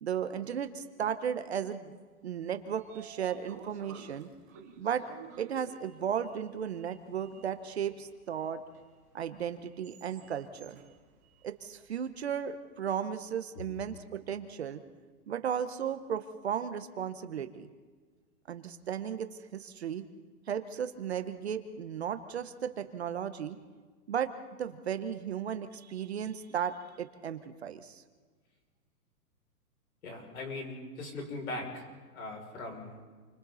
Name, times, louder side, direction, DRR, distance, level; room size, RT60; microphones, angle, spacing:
voice 1, 0.0-4.3 4.8-5.0 5.4-8.6 9.1-10.8 11.4-14.8 15.3-17.7 18.5-20.0 20.5-23.6 24.1-24.3 24.6-28.0, right 8 dB, 45° right, 10 dB, 1.1 m, -35 dB
Sliding door, 2.3-12.5, right 7 dB, 10° right, 0.8 m, -54 dB
voice 2, 30.0-31.8 32.1-33.0, left 2 dB, 65° left, 1 dB, 6.5 m, -40 dB
29.0 x 25.0 x 4.2 m, 1.5 s
hypercardioid pair, 175°, 46 cm